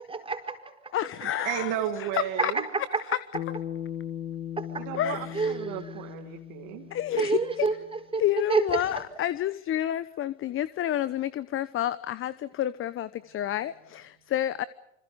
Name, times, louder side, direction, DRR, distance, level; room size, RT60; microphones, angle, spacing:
voice 1, 0.1-0.9 2.4-3.0 4.6-4.9 5.3-5.8 7.2-8.2 8.5-9.0, right 4 dB, 15° right, 5 dB, 4.7 m, -29 dB
voice 2, 0.9-1.7 2.0-2.5 5.0-5.5 6.9-7.7 8.2-14.6, left 12 dB, 35° left, 16 dB, 1.0 m, -29 dB
voice 3, 1.4-2.7 4.8-6.9, right 11 dB, 55° right, 4 dB, 2.5 m, -33 dB
Bass guitar, 3.3-7.8, left 10 dB, 60° left, 2.6 m, -38 dB
27.5 x 26.0 x 5.2 m, 0.86 s
hypercardioid pair, 90°, 38 cm